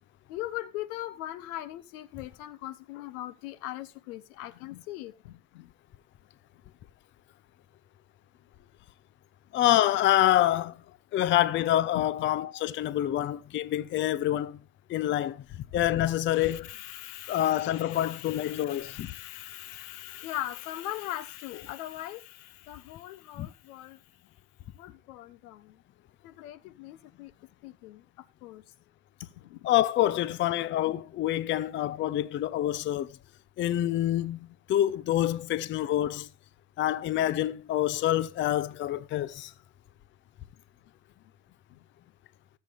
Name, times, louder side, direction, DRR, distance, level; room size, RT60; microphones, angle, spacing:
voice 1, 0.3-5.7 11.9-12.3 16.3-24.0 24.7-25.8 26.2-27.3 27.6-28.6 29.4-29.6 30.3-30.4 41.7-41.8, left 14 dB, 85° left, 1.1 m, -40 dB
voice 2, 9.5-10.8 11.1-14.6 14.9-15.4 15.7-16.7 17.3-19.1 23.4-23.5 29.6-33.2 33.6-36.3 36.8-39.5, left 13 dB, 25° left, 0.6 m, -26 dB
20.5 x 7.7 x 2.4 m
supercardioid pair, 135°, 43 cm